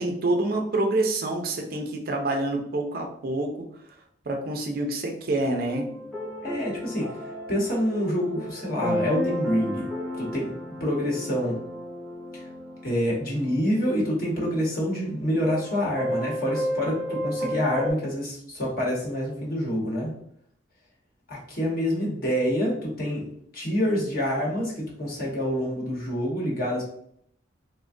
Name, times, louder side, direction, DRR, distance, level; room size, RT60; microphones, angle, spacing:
voice 1, 0.0-3.5 4.3-5.9, right 2 dB, 50° right, 2 dB, 0.4 m, -27 dB
sound 1, 5.7-17.9, equal, ahead, 0.6 m, -33 dB
voice 2, 6.4-9.9 10.2-10.5 10.8-11.6 12.3-12.5 12.8-20.1 21.3-23.3 23.5-26.8, equal, 50° left, -3 dB, 0.9 m, -27 dB
3.3 x 2.1 x 2.5 m, 0.67 s
head